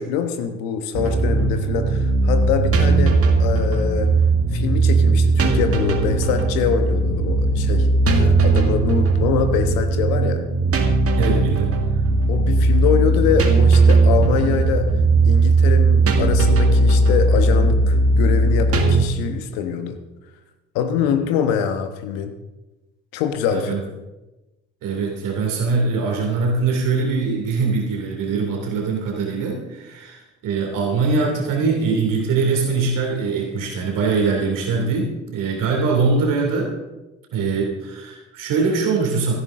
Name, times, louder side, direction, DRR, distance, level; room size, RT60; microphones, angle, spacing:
voice 1, 0.0-4.1 4.5-10.4 12.3-14.9 15.2-20.0 20.7-22.3 23.1-23.8, left 7 dB, 65° left, 8 dB, 1.3 m, -24 dB
sound 1, 0.9-19.0, right 3 dB, 40° right, 2.0 m, -17 dB
voice 2, 11.1-11.7 21.1-21.4 23.5-23.8 24.8-36.7 37.3-39.3, right 4 dB, 55° right, 0 dB, 3.0 m, -22 dB
17.0 x 14.0 x 3.8 m, 1.1 s
figure-of-eight pair, 50°, 37 cm